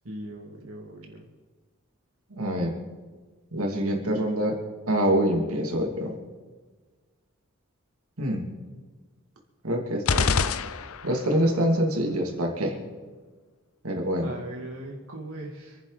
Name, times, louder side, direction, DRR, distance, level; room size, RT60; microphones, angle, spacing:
voice 1, 0.0-1.2 14.2-15.8, right 1 dB, 70° right, -2 dB, 2.1 m, -39 dB
voice 2, 2.3-2.7 3.5-4.6 4.9-6.2 8.2-8.4 9.6-10.3 11.0-12.8 13.8-14.3, equal, 90° right, 2 dB, 2.7 m, -25 dB
sound 1, 10.1-11.4, left 5 dB, 80° left, 0.6 m, -25 dB
27.0 x 10.5 x 4.1 m, 1.4 s
head